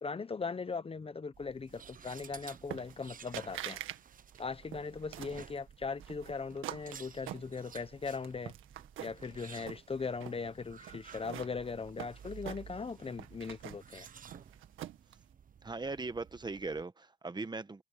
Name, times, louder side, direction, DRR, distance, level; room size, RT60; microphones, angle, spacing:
voice 1, 0.0-3.8 4.4-8.5 9.0-14.1, left 4 dB, 30° left, 1.0 m, -39 dB
sound 1, 1.3-16.8, right 7 dB, 45° right, 1.1 m, -54 dB
sound 2, 2.7-3.1 3.3-4.0 4.3-5.4 6.0-7.9 8.2-9.3 9.6-10.4 10.9-12.9 13.2-15.1, right 13 dB, 85° right, 1.8 m, -45 dB
voice 2, 15.6-17.8, right 3 dB, 20° right, 1.3 m, -39 dB
cardioid pair, 90°, 20 cm